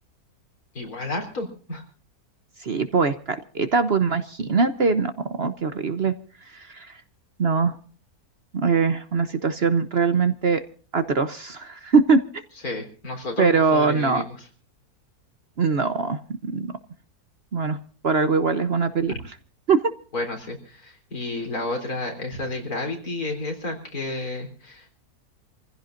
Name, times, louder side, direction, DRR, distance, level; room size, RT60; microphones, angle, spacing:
voice 1, 0.7-1.8 12.6-14.5 19.1-19.2 20.1-24.9, left 2 dB, 70° left, 3 dB, 4.3 m, -31 dB
voice 2, 2.6-5.1 5.4-6.1 6.5-6.9 7.4-7.8 8.5-10.6 10.9-12.2 13.4-14.2 15.6-16.7 17.5-17.8 18.0-19.1 19.7-19.8, right 5 dB, 45° right, 11 dB, 1.0 m, -22 dB
28.0 x 15.5 x 2.6 m, 0.41 s
omnidirectional pair, 1.6 m